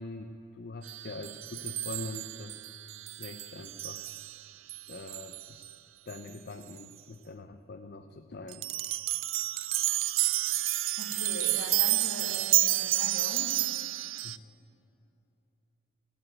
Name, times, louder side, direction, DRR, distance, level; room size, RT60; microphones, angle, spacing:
voice 1, 0.0-2.7 3.2-4.1 4.9-5.7 6.1-8.7 14.2-14.4, left 2 dB, 50° left, 7 dB, 0.6 m, -43 dB
sound 1, 0.8-5.7 6.1-6.2 6.7-6.8 8.5-14.4, right 16 dB, 70° right, 0.4 m, -30 dB
voice 2, 11.0-13.5, left 2 dB, 65° left, 1 dB, 2.2 m, -41 dB
15.0 x 8.6 x 9.0 m, 2.7 s
head